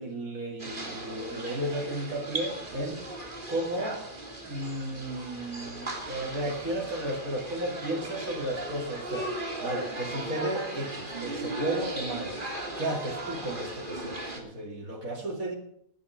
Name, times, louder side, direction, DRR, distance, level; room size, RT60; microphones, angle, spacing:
voice 1, 0.0-3.0 3.5-4.0 4.4-12.4 12.8-15.5, right 1 dB, 80° right, 0 dB, 2.8 m, -34 dB
sound 1, 0.6-14.4, right 1 dB, 35° right, 3.1 m, -37 dB
18.0 x 9.4 x 5.6 m, 0.70 s
omnidirectional pair, 1.5 m